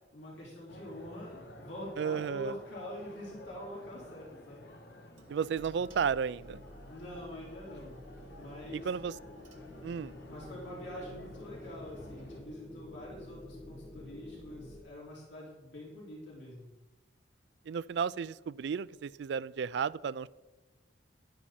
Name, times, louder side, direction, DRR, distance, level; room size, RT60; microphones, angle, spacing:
voice 1, 0.1-4.7 6.9-7.9 8.4-8.9 10.3-16.7, left 1 dB, 75° left, -6 dB, 4.0 m, -45 dB
sound 1, 0.7-12.4, left 1 dB, 55° left, 1.6 m, -53 dB
voice 2, 2.0-2.5 5.3-6.6 8.7-9.1 9.8-10.1 17.7-20.3, right 6 dB, 65° right, 18 dB, 0.3 m, -33 dB
sound 2, 5.1-12.3, right 2 dB, 85° right, 1.3 m, -60 dB
sound 3, 5.5-14.8, left 1 dB, 20° left, 1.3 m, -50 dB
11.5 x 9.6 x 4.3 m, 1.1 s
head